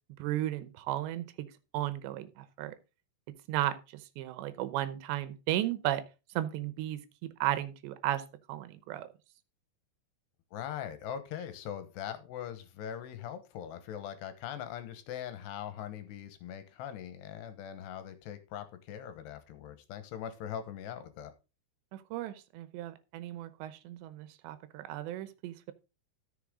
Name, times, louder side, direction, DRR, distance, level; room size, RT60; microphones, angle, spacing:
voice 1, 0.2-1.5 1.7-2.8 3.5-6.0 6.4-7.0 7.4-8.2 8.5-9.1 21.9-25.7, right 13 dB, 90° right, 3.1 m, -34 dB
voice 2, 10.5-21.3, left 9 dB, 75° left, 3.1 m, -41 dB
13.5 x 6.8 x 3.7 m
omnidirectional pair, 5.0 m